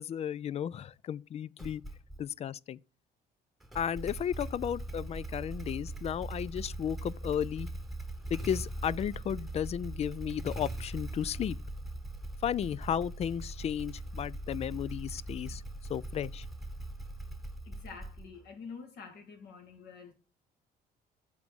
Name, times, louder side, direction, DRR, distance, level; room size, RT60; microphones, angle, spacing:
voice 1, 0.0-1.8 2.2-2.8 3.7-7.7 8.3-11.6 12.4-15.6 15.9-16.4, left 9 dB, 40° left, 0.4 m, -34 dB
Motorcycle / Engine starting, 1.6-2.3 3.6-18.5, right 1 dB, ahead, 1.1 m, -41 dB
voice 2, 17.6-20.1, left 5 dB, 75° left, 2.5 m, -47 dB
7.2 x 4.8 x 6.2 m
cardioid pair, 110°, 17 cm